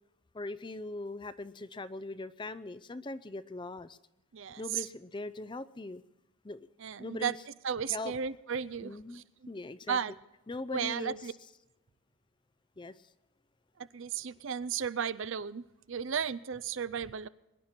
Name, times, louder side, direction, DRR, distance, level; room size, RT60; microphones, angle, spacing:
voice 1, 0.3-4.0 4.6-6.0 6.4-6.7 7.0-7.4 7.9-8.1 8.8-10.0 10.5-11.3 12.8-13.1, left 2 dB, 20° left, 15 dB, 0.5 m, -41 dB
voice 2, 4.3-4.9 6.8-7.3 7.6-9.2 9.9-10.1 10.7-11.3 13.8-17.3, right 7 dB, 60° right, 17 dB, 0.5 m, -34 dB
22.5 x 11.5 x 4.3 m, 0.97 s
head